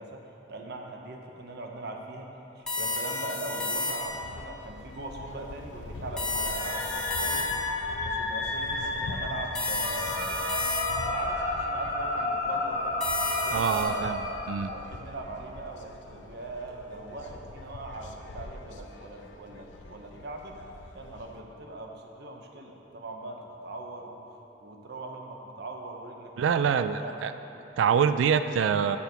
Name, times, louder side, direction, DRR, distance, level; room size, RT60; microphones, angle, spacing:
voice 1, 0.0-7.5 8.0-10.5 11.0-13.0 13.4-14.2 14.6-20.6 20.9-24.2 24.6-27.2 27.5-27.9, right 2 dB, 60° right, 2 dB, 0.8 m, -40 dB
sound 1, 2.7-4.3 6.2-7.8 9.5-11.2 13.0-13.8, left 2 dB, 5° left, 0.9 m, -32 dB
sound 2, 4.1-21.4, left 2 dB, 75° left, 0.5 m, -44 dB
sound 3, 6.5-14.6, left 2 dB, 55° left, 1.3 m, -32 dB
voice 2, 13.5-14.2 14.5-14.7 26.4-27.3 27.8-29.0, right 7 dB, 85° right, 12 dB, 0.3 m, -25 dB
7.2 x 4.5 x 6.7 m, 2.9 s
head